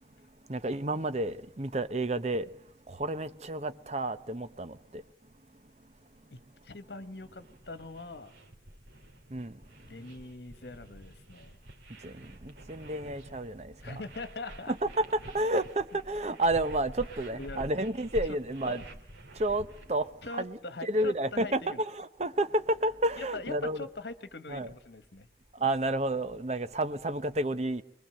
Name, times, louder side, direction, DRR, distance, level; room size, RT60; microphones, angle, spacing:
voice 1, 0.5-5.0 9.3-9.6 12.0-13.9 14.7-15.0 15.3-18.8 19.3-23.8 24.5-24.7 25.5-27.8, right 1 dB, 35° right, 0.9 m, -31 dB
voice 2, 6.3-8.3 9.8-11.6 13.8-14.7 15.9-16.0 17.3-17.7 18.6-18.8 20.2-21.8 23.2-25.3, left 2 dB, 65° left, 1.4 m, -42 dB
sound 1, 7.2-20.1, right 1 dB, 90° right, 2.8 m, -48 dB
25.0 x 21.0 x 7.8 m
head